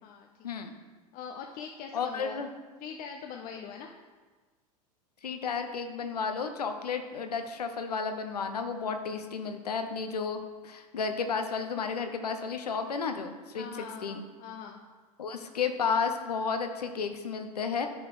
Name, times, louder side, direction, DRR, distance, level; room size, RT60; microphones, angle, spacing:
voice 1, 1.1-2.4 2.8-3.9 13.5-14.8, left 6 dB, 45° left, 2 dB, 0.7 m, -42 dB
voice 2, 1.9-2.5 5.2-14.2 15.2-17.9, left 5 dB, 90° left, 7 dB, 0.7 m, -32 dB
9.7 x 4.1 x 4.8 m, 1.3 s
hypercardioid pair, 85°, 20 cm